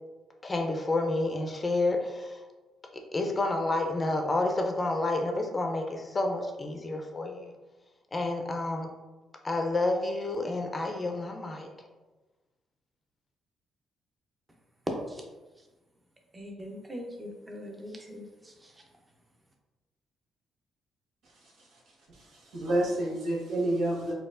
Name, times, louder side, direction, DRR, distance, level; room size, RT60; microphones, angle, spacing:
voice 1, 0.4-2.4 3.1-7.5 8.1-8.9 9.4-11.7, left 2 dB, 25° left, 3 dB, 0.5 m, -29 dB
voice 2, 16.3-18.8, equal, 20° right, 1 dB, 0.6 m, -42 dB
voice 3, 22.1-24.1, right 1 dB, 80° right, -4 dB, 1.0 m, -29 dB
4.1 x 2.4 x 2.4 m, 1.2 s
cardioid pair, 90°, 0 cm